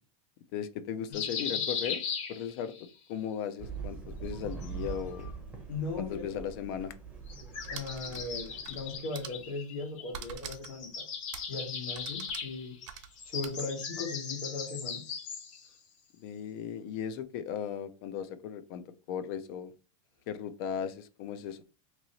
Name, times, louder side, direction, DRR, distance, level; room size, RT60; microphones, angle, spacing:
voice 1, 0.5-2.0 2.3-5.3 6.0-6.9 16.2-18.8 19.1-19.7 20.3-21.6, left 8 dB, 45° left, 12 dB, 0.5 m, -37 dB
sound 1, 1.1-2.9 4.3-5.3 7.3-10.2 10.5-15.7, left 6 dB, 65° left, 1.2 m, -38 dB
sound 2, 3.6-9.0, right 5 dB, 5° right, 0.7 m, -43 dB
voice 2, 5.7-6.5 7.7-11.0 11.5-12.8 13.2-15.0, left 3 dB, 90° left, 3 dB, 1.5 m, -38 dB
sound 3, 7.6-8.8 9.1-9.5 10.1-10.8 11.3-11.6 11.9-13.6, right 8 dB, 65° right, 0.7 m, -45 dB
3.0 x 2.8 x 4.0 m, 0.35 s
supercardioid pair, 160°, 18 cm